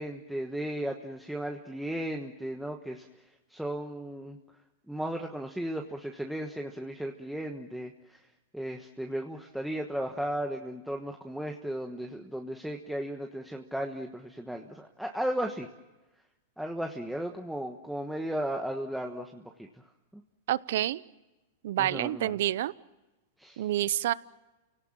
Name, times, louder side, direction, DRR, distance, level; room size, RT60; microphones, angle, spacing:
voice 1, 0.0-3.1 3.5-4.4 4.9-8.2 8.5-15.7 16.6-19.7 20.1-20.2 21.8-22.4 23.4-23.7, right 1 dB, ahead, 3 dB, 1.3 m, -35 dB
voice 2, 20.5-21.0 21.6-22.7 23.6-24.1, right 13 dB, 70° right, 20 dB, 0.7 m, -28 dB
30.0 x 18.0 x 7.5 m, 1.1 s
hypercardioid pair, 135°, 0 cm